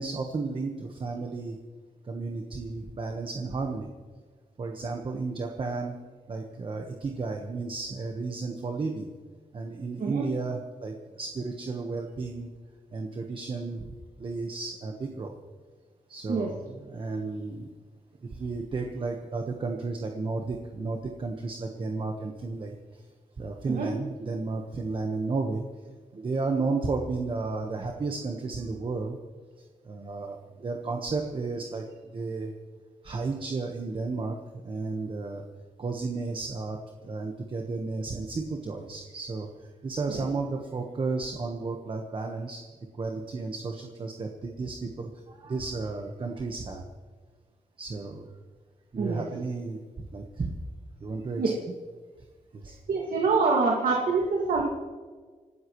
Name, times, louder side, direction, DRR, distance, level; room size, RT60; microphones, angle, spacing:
voice 1, 0.0-1.6 2.0-3.9 4.6-5.9 6.3-9.1 9.5-12.5 12.9-13.9 14.2-15.3 16.1-17.7 18.2-22.7 23.4-29.2 29.9-32.5 33.0-35.5 35.8-36.8 37.0-39.5 39.8-42.6 43.0-46.8 47.8-48.3 48.9-49.8 50.1-50.5 51.0-51.7 52.5-52.8, right 3 dB, 40° right, 3 dB, 1.3 m, -33 dB
voice 2, 49.0-49.3 51.4-51.5 52.9-54.6, right 4 dB, 85° right, -2 dB, 2.2 m, -25 dB
27.5 x 13.0 x 3.2 m, 1.5 s
wide cardioid pair, 155°, 14 cm